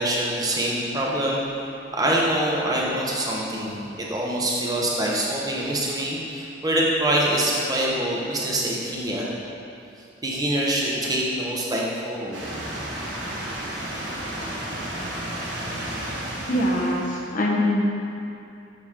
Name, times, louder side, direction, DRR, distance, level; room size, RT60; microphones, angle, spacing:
voice 1, 0.0-1.4 1.9-9.3 10.2-12.4, right 1 dB, 20° right, -4 dB, 1.0 m, -25 dB
sound 1, 12.3-17.3, right 1 dB, 80° right, 1.5 m, -32 dB
voice 2, 16.5-17.8, left 1 dB, 45° left, -2 dB, 1.0 m, -23 dB
6.8 x 6.3 x 3.7 m, 2.6 s
head